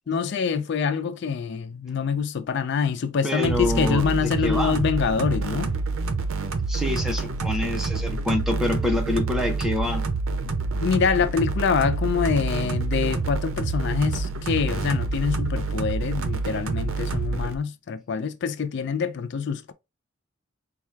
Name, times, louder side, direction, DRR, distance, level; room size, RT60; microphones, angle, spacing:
voice 1, 0.1-5.7 10.5-10.6 10.8-19.7, left 6 dB, 55° left, 0.3 m, -25 dB
voice 2, 3.2-4.8 6.7-10.1, left 2 dB, ahead, 0.6 m, -27 dB
sound 1, 3.4-17.5, right 3 dB, 70° right, 0.6 m, -27 dB
4.3 x 2.3 x 3.2 m
head